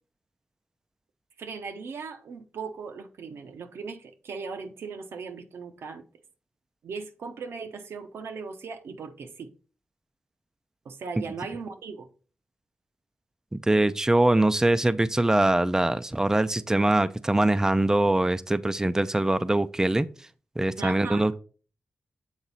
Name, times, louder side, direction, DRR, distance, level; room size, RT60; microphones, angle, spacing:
voice 1, 1.4-6.0 6.8-9.5 10.8-12.1 20.8-21.2, right 5 dB, 80° right, 0.8 m, -38 dB
voice 2, 13.7-20.1 20.6-21.4, right 1 dB, 15° right, 0.4 m, -23 dB
7.3 x 3.9 x 4.0 m
cardioid pair, 55°, 4 cm